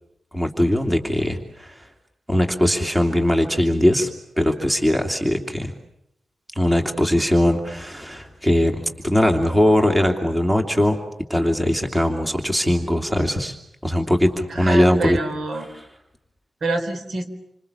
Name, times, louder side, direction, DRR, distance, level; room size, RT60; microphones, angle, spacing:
voice 1, 0.3-1.9 2.3-4.1 4.4-5.7 6.6-11.0 11.3-13.6 13.8-15.2 15.5-15.9, left 1 dB, 10° right, 4 dB, 3.0 m, -20 dB
voice 2, 14.5-15.7 16.6-17.3, right 2 dB, 55° right, 7 dB, 4.1 m, -26 dB
28.0 x 26.5 x 7.1 m, 0.80 s
wide cardioid pair, 120°, 0 cm